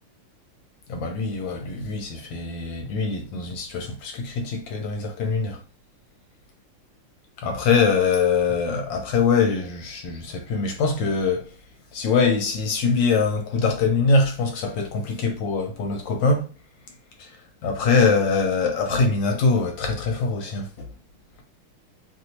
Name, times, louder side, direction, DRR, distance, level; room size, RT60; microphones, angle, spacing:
voice 1, 0.9-5.6 7.4-11.5 11.9-16.5 17.2-17.3 17.6-20.9, left 4 dB, 70° left, 1.3 m, -23 dB
3.3 x 2.6 x 2.9 m
omnidirectional pair, 2.3 m